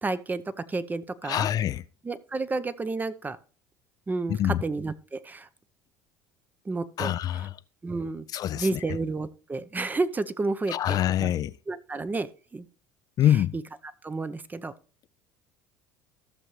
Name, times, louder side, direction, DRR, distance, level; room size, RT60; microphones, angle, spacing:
voice 1, 0.0-0.4 0.7-1.5 2.0-3.4 4.1-5.5 6.6-7.1 7.8-8.2 8.5-11.3 11.7-12.7 13.3-13.6 14.0-14.7, right 3 dB, 20° right, 0.7 m, -31 dB
voice 2, 1.2-1.8 4.3-4.6 7.0-7.5 8.3-8.8 10.7-11.5 13.2-13.5, left 11 dB, 45° left, 0.4 m, -25 dB
14.0 x 6.6 x 3.2 m
hypercardioid pair, 70°, 9 cm